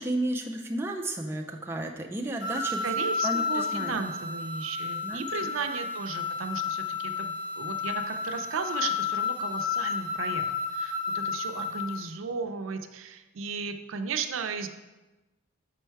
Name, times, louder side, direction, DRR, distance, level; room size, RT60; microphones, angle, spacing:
voice 1, 0.0-2.8 3.2-4.0 5.0-5.5, right 1 dB, 10° right, 1 dB, 0.3 m, -33 dB
sound 1, 2.4-12.0, left 5 dB, 65° left, 2.0 m, -31 dB
voice 2, 2.8-10.4 10.7-14.7, right 5 dB, 75° right, 7 dB, 0.5 m, -35 dB
6.1 x 4.5 x 4.5 m, 1.1 s
head